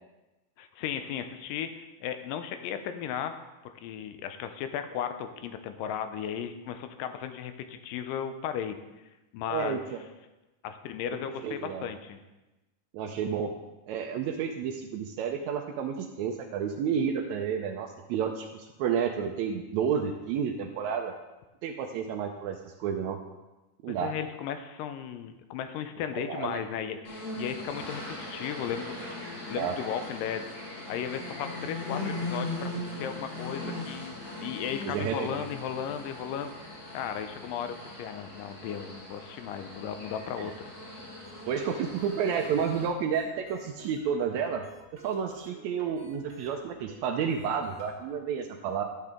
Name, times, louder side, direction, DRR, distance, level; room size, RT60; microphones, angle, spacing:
voice 1, 0.6-3.4 3.6-8.8 9.3-9.8 10.6-12.2 23.9-29.0 29.5-30.5 30.9-40.5, left 8 dB, 85° left, 9 dB, 2.3 m, -35 dB
voice 2, 9.5-10.1 11.1-11.9 12.9-13.5 13.9-21.1 21.6-23.2 23.8-24.1 26.1-26.6 29.6-29.7 34.9-35.5 40.4-40.5 41.5-44.6 45.0-48.8, right 7 dB, 85° right, 3 dB, 1.6 m, -31 dB
sound 1, 27.0-42.9, left 2 dB, 55° left, 3.0 m, -39 dB
sound 2, 41.2-48.1, right 2 dB, 45° right, 1.6 m, -52 dB
12.0 x 6.6 x 3.6 m, 1.1 s
omnidirectional pair, 3.9 m